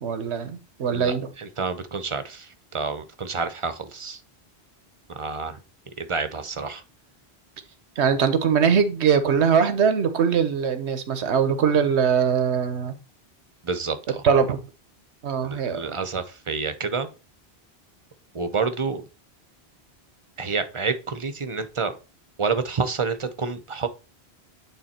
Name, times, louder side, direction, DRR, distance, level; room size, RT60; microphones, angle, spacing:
voice 1, 0.0-1.3 8.0-12.9 14.2-14.6 15.2-16.0, right 7 dB, 90° right, 1.2 m, -22 dB
voice 2, 0.9-4.2 5.1-5.6 6.0-6.8 13.6-14.2 15.4-17.1 18.3-19.0 20.4-22.0 22.4-23.9, right 4 dB, 30° right, 0.7 m, -29 dB
8.9 x 3.5 x 4.3 m
omnidirectional pair, 1.1 m